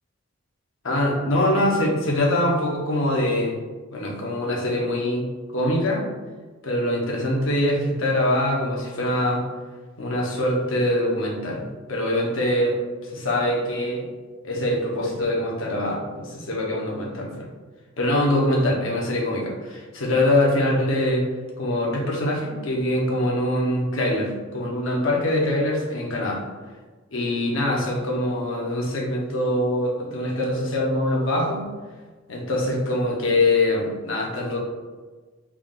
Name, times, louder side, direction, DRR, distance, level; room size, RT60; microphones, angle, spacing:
voice 1, 0.8-3.6 3.9-6.0 6.6-9.4 10.0-14.0 14.4-17.5 18.0-21.3 21.6-26.4 27.1-31.6 32.3-34.6, left 1 dB, 75° left, -2 dB, 0.8 m, -23 dB
3.5 x 2.4 x 3.6 m, 1.3 s
head